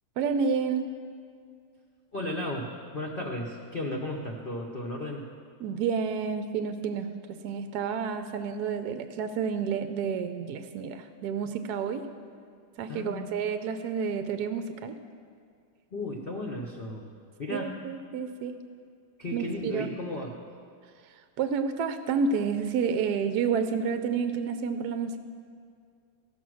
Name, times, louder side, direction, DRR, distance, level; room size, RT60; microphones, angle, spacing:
voice 1, 0.2-0.9 5.6-12.0 12.8-15.0 17.5-18.6 19.3-19.9 21.4-25.2, right 6 dB, 70° right, 9 dB, 1.0 m, -30 dB
voice 2, 2.1-5.3 12.9-13.3 15.9-17.1 17.4-17.8 19.2-20.3, left 1 dB, 45° left, -1 dB, 0.7 m, -34 dB
15.0 x 5.7 x 6.2 m, 2.3 s
omnidirectional pair, 2.0 m